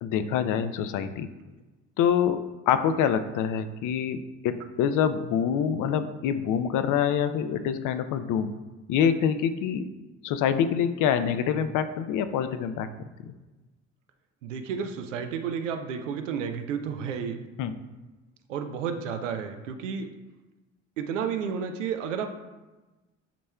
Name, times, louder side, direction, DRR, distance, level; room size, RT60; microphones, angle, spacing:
voice 1, 0.0-1.3 2.0-8.5 8.9-9.9 10.2-12.9 13.3-13.4 17.6-17.7, left 8 dB, 55° left, 10 dB, 0.6 m, -26 dB
voice 2, 14.4-17.4 18.5-20.1 21.0-22.3, right 7 dB, 85° right, 6 dB, 0.7 m, -31 dB
10.0 x 4.2 x 2.3 m, 1.2 s
hypercardioid pair, 55°, 36 cm